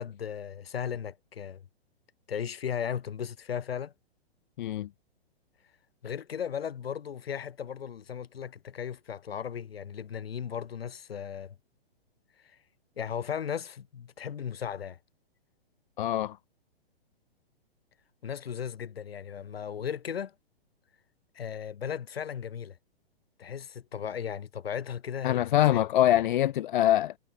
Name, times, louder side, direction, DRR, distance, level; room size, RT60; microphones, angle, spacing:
voice 1, 0.0-1.6 2.3-3.9 6.0-11.5 13.0-15.0 18.2-20.3 21.4-22.8 23.4-25.9, left 8 dB, 70° left, 3.5 m, -36 dB
voice 2, 4.6-4.9 16.0-16.4 25.2-27.2, left 12 dB, 50° left, 0.8 m, -24 dB
hypercardioid pair, 125°, 31 cm